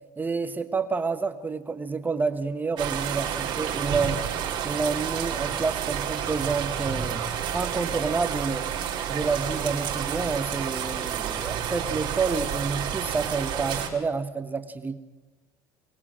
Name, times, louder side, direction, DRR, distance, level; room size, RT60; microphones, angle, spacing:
voice 1, 0.0-4.3 4.6-7.2 7.5-8.7 9.1-15.0, right 4 dB, 20° right, 9 dB, 1.4 m, -29 dB
sound 1, 2.8-13.9, right 9 dB, 55° right, 4.7 m, -30 dB
24.0 x 21.5 x 7.6 m, 1.2 s
cardioid pair, 115°, 9 cm